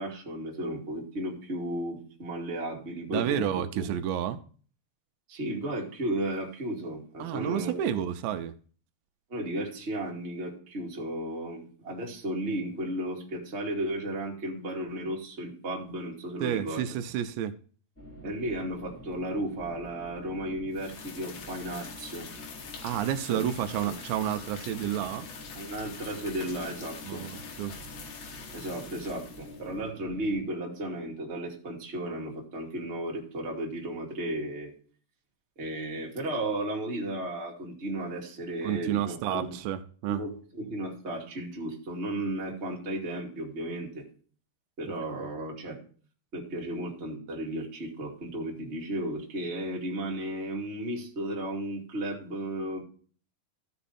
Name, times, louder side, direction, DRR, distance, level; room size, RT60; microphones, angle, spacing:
voice 1, 0.0-3.5 3.7-3.9 5.3-8.0 9.3-16.8 18.2-22.3 23.3-23.4 23.8-23.9 25.5-27.2 28.5-34.7 35.6-39.6 40.1-44.0 44.8-45.8 46.3-52.8, right 1 dB, 20° right, 1.8 m, -34 dB
voice 2, 3.1-4.4 7.2-8.5 16.4-17.5 22.8-25.3 27.0-27.7 38.6-40.2 45.2-45.3, right 10 dB, 85° right, 2.8 m, -30 dB
sound 1, 18.0-30.4, left 1 dB, 5° left, 2.5 m, -47 dB
sound 2, 20.7-29.7, left 6 dB, 55° left, 2.3 m, -45 dB
14.5 x 5.5 x 4.2 m
omnidirectional pair, 5.1 m